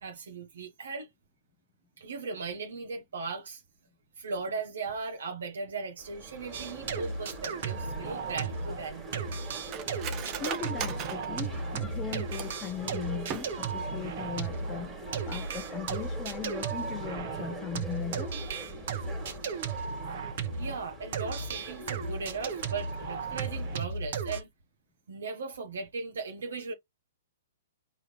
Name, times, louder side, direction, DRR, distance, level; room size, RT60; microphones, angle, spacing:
voice 1, 0.0-1.1 2.0-3.6 4.2-9.3 20.6-24.5 25.1-26.7, right 4 dB, 80° right, 0.9 m, -38 dB
sound 1, 6.0-23.8, right 2 dB, 10° right, 1.8 m, -43 dB
sound 2, 6.5-8.9 9.1-20.8 21.1-24.4, right 5 dB, 55° right, 1.1 m, -35 dB
Cutlery silverware, 8.2-12.7 13.2-13.9 14.2-14.3 14.6-15.0 15.3-15.5, right 9 dB, 30° right, 0.6 m, -40 dB
voice 2, 10.4-15.0 15.3-18.4, left 9 dB, 20° left, 0.5 m, -38 dB
4.7 x 2.7 x 3.3 m
hypercardioid pair, 140°, 0 cm